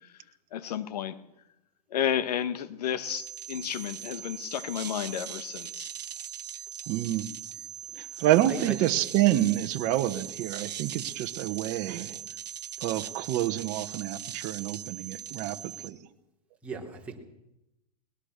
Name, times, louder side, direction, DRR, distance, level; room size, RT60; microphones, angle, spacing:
voice 1, 0.5-1.1 1.9-5.9, left 10 dB, 75° left, 1.7 m, -32 dB
sound 1, 3.0-15.9, right 9 dB, 85° right, 1.2 m, -40 dB
voice 2, 6.9-7.3 8.0-12.2 12.8-16.0, right 14 dB, 40° right, 1.3 m, -28 dB
voice 3, 8.1-8.8 16.6-17.2, right 5 dB, 5° right, 4.2 m, -38 dB
22.0 x 19.5 x 6.8 m
hypercardioid pair, 125°, 20 cm